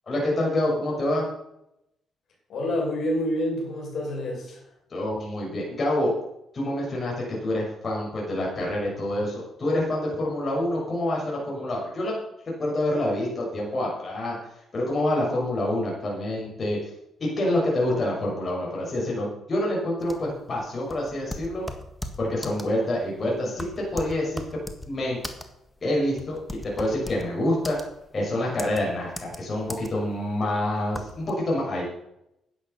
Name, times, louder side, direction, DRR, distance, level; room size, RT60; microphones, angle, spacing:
voice 1, 0.1-1.3 4.9-6.1 6.5-12.2 12.6-14.4 14.7-16.8 17.2-21.7 22.2-23.7 23.9-24.6 24.9-25.2 25.8-27.8 28.1-31.8, left 1 dB, 40° left, -4 dB, 6.1 m, -27 dB
voice 2, 2.5-4.6, left 1 dB, 65° left, -3 dB, 6.5 m, -28 dB
sound 1, 20.0-31.3, left 1 dB, 5° left, 1.7 m, -38 dB
11.0 x 9.6 x 6.9 m, 0.82 s
cardioid pair, 90°, 0 cm